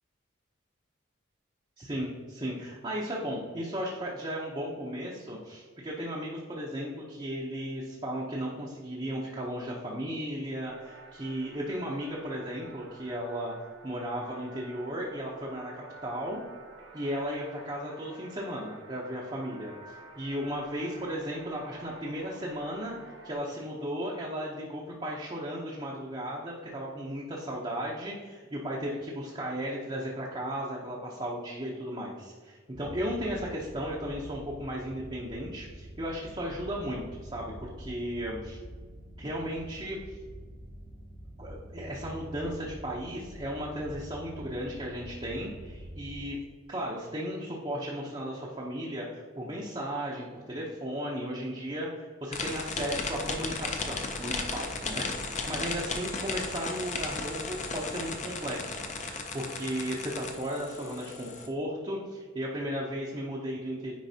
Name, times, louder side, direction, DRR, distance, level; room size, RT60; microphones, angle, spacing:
voice 1, 1.8-13.5 13.8-16.4 16.9-22.9 23.2-38.6 39.2-40.2 41.4-46.4 46.7-63.9, equal, 25° right, -4 dB, 0.7 m, -35 dB
sound 1, 10.6-23.3, right 2 dB, 70° right, 1.5 m, -50 dB
sound 2, 32.7-46.2, equal, 65° left, 1.4 m, -46 dB
sound 3, 52.3-61.5, left 4 dB, 35° left, 0.6 m, -35 dB
9.2 x 4.6 x 2.8 m, 1.5 s
head